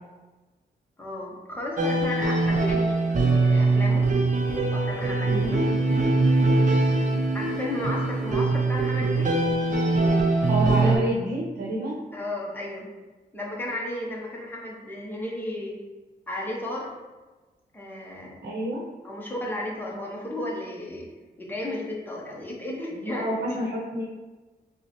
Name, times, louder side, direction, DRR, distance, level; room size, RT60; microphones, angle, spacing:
voice 1, 1.0-3.0 3.4-4.0 4.7-5.8 7.3-9.3 12.1-12.9 13.3-15.7 16.3-16.9 17.7-18.4 19.0-21.1 21.4-23.6, left 1 dB, 10° left, -3 dB, 0.7 m, -33 dB
sound 1, 1.8-11.0, right 3 dB, 50° right, 0.6 m, -22 dB
voice 2, 10.5-11.9 18.4-18.8 23.1-24.0, right 1 dB, 80° right, -4 dB, 0.8 m, -28 dB
5.1 x 2.1 x 3.0 m, 1.2 s
wide cardioid pair, 170°, 17 cm